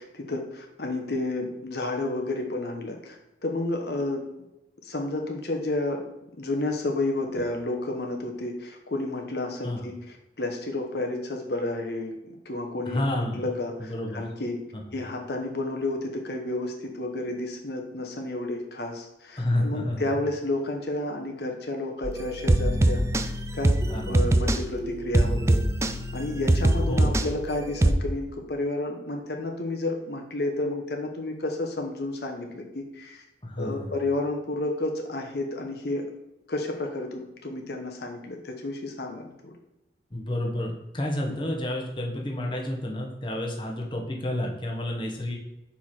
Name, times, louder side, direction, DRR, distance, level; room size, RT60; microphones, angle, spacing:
voice 1, 0.0-3.2 3.4-4.3 4.8-6.0 6.4-12.1 12.4-14.6 14.9-23.7 24.1-25.6 26.1-33.2 33.6-36.1 36.5-39.5 41.3-41.5, left 2 dB, 65° left, 2 dB, 0.9 m, -31 dB
voice 2, 12.9-13.5 13.8-14.2 14.7-14.8 19.4-20.0 23.9-24.3 26.9-27.2 33.4-33.9 40.1-45.4, left 1 dB, 30° left, 0 dB, 1.0 m, -30 dB
sound 1, 22.0-27.9, right 1 dB, 15° right, 0.3 m, -24 dB
5.7 x 4.8 x 4.3 m, 0.94 s
head